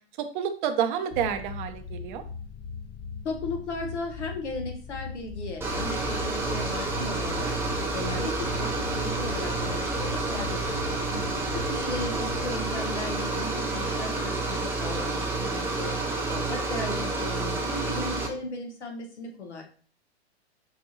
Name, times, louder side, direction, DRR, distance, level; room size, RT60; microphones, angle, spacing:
voice 1, 0.3-2.2 11.1-11.5, right 8 dB, 45° right, 7 dB, 0.7 m, -29 dB
sound 1, 1.1-14.0, left 6 dB, 45° left, 1.6 m, -40 dB
voice 2, 3.2-7.6 7.9-11.3 11.5-15.9 16.3-19.6, left 3 dB, 80° left, 2 dB, 1.1 m, -36 dB
sound 2, 5.6-18.3, right 3 dB, 5° right, 0.6 m, -29 dB
4.7 x 2.6 x 2.8 m, 0.42 s
figure-of-eight pair, 100°, 34 cm